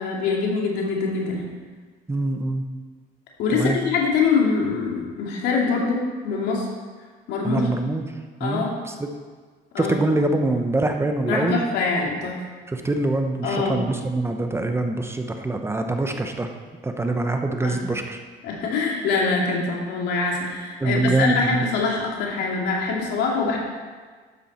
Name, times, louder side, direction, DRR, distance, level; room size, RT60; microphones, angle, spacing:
voice 1, 0.0-1.5 3.4-6.7 7.3-7.6 8.4-8.7 9.7-10.0 11.3-12.4 13.4-13.8 17.6-17.8 18.4-23.6, left 4 dB, 85° left, -1 dB, 2.6 m, -24 dB
voice 2, 2.1-2.7 3.5-3.8 7.4-8.0 8.4-9.1 9.8-11.6 12.7-16.5 16.8-18.2 20.8-21.6, right 2 dB, 15° right, 5 dB, 0.9 m, -24 dB
12.0 x 8.8 x 4.3 m, 1.5 s
cardioid pair, 110°, 17 cm